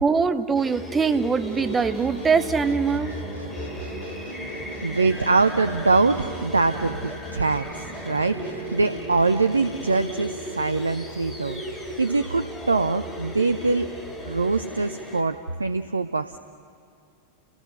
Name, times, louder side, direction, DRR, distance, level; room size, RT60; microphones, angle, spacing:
voice 1, 0.0-3.2, right 5 dB, 15° right, 11 dB, 0.9 m, -22 dB
sound 1, 0.6-15.2, equal, 10° left, 3.6 m, -36 dB
sound 2, 1.5-10.0, right 2 dB, 75° left, 3.6 m, -39 dB
voice 2, 4.8-13.9 14.2-16.4, right 3 dB, 80° right, 11 dB, 0.6 m, -23 dB
30.0 x 19.0 x 6.5 m, 2.4 s
figure-of-eight pair, 90°, 0 cm